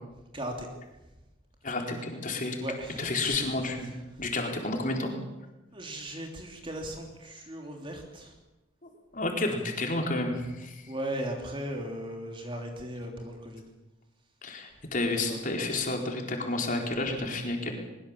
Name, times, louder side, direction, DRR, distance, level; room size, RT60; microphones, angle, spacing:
voice 1, 0.3-0.7 2.3-4.0 5.7-8.3 10.9-13.6 15.1-15.4, right 1 dB, 25° right, 2 dB, 3.2 m, -37 dB
voice 2, 1.6-2.6 3.0-3.9 4.2-5.1 8.8-10.9 14.4-17.7, left 2 dB, 45° left, 2 dB, 4.3 m, -31 dB
22.0 x 22.0 x 7.4 m, 1.0 s
head